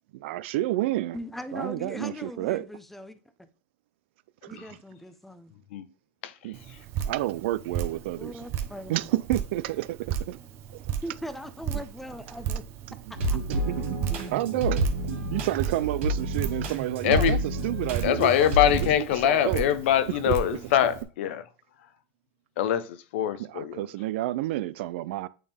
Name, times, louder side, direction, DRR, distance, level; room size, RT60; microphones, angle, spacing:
voice 1, 0.1-1.2 1.5-2.7 4.4-4.7 6.4-6.6 7.1-8.3 8.9-10.4 11.7-11.8 12.9-14.0 14.3-14.9 15.3-18.5 19.0-19.7 20.1-20.4 23.4-25.3, right 15 dB, 70° right, 0.4 m, -30 dB
voice 2, 1.1-3.5 4.5-5.5 8.2-9.1 11.0-12.6 13.2-13.4 14.1-14.3, equal, 5° left, 0.5 m, -40 dB
Drip, 6.5-21.0, right 9 dB, 40° right, 0.9 m, -35 dB
sound 1, 13.1-18.9, equal, 90° right, 2.2 m, -30 dB
voice 3, 17.0-17.4 18.0-21.4 22.6-23.9, left 11 dB, 75° left, 0.6 m, -24 dB
8.6 x 3.5 x 3.4 m
supercardioid pair, 140°, 7 cm